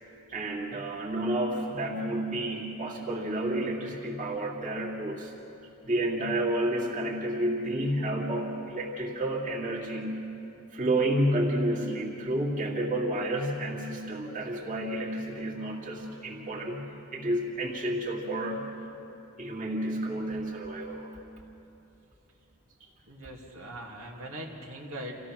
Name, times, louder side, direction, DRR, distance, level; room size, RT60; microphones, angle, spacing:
voice 1, 0.3-5.3 5.8-10.3 10.7-18.7 19.4-21.1, right 1 dB, 40° right, -3 dB, 2.4 m, -30 dB
voice 2, 23.1-25.3, right 1 dB, 85° right, -2 dB, 2.7 m, -41 dB
27.5 x 16.0 x 6.2 m, 3.0 s
head